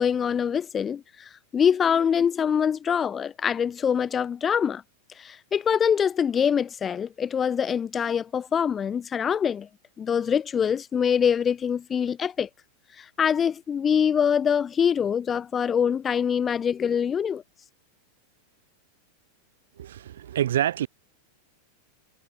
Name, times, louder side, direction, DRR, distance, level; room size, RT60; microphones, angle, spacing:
voice 1, 0.0-4.8 5.2-9.7 10.0-12.5 13.0-17.4, left 7 dB, 20° left, 3.2 m, -24 dB
voice 2, 19.8-20.9, right 11 dB, 60° right, 4.0 m, -26 dB
figure-of-eight pair, 90°, 0 cm